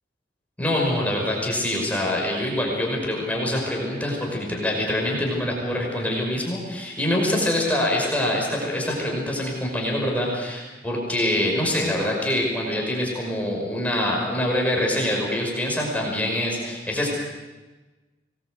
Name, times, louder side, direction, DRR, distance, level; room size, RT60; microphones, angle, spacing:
voice 1, 0.6-17.1, left 1 dB, 10° left, -2 dB, 5.6 m, -25 dB
24.5 x 20.0 x 8.0 m, 1.2 s
head